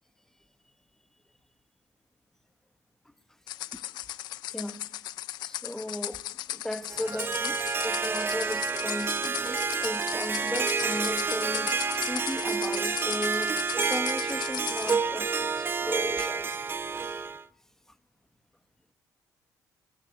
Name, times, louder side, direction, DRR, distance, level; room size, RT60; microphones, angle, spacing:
sound 1, 3.5-15.0, left 15 dB, 80° left, 1.0 m, -37 dB
voice 1, 4.5-4.9 5.4-11.7 12.0-16.6 16.9-17.2, left 1 dB, 5° left, 1.5 m, -36 dB
Harp, 6.9-17.4, right 5 dB, 30° right, 0.9 m, -29 dB
26.0 x 19.5 x 9.5 m
cardioid pair, 100°, 7 cm